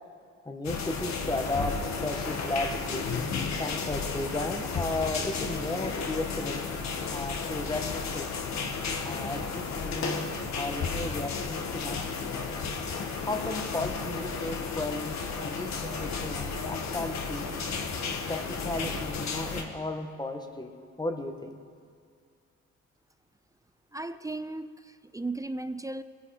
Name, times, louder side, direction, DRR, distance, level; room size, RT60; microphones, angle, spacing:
voice 1, 0.4-3.1 3.6-6.8 7.1-8.3 9.0-10.3 10.5-12.3 13.2-17.5 18.3-20.7 21.0-21.5, left 2 dB, 15° left, 5 dB, 1.4 m, -34 dB
sound 1, 0.6-19.6, left 5 dB, 65° left, 1.7 m, -33 dB
sound 2, 16.7-19.4, right 2 dB, 55° right, 3.1 m, -47 dB
voice 2, 23.9-26.0, right 2 dB, 10° right, 12 dB, 0.4 m, -36 dB
22.0 x 9.4 x 4.9 m, 2.2 s
cardioid pair, 90°, 30 cm